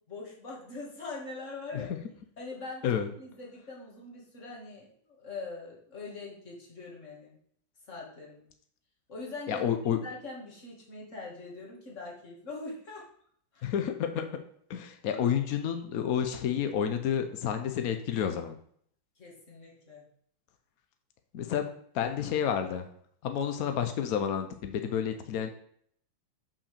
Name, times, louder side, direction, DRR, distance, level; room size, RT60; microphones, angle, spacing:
voice 1, 0.1-1.9 2.4-2.9 3.2-7.4 7.9-8.5 9.1-9.7 10.0-13.1 13.5-13.7 15.1-15.3 19.2-20.0, left 3 dB, 35° left, -2 dB, 2.3 m, -42 dB
voice 2, 9.5-10.0 13.6-14.3 14.7-18.6 21.3-21.7 21.9-22.8 23.2-25.5, left 8 dB, 75° left, 7 dB, 0.8 m, -30 dB
5.7 x 5.5 x 6.7 m, 0.64 s
omnidirectional pair, 2.3 m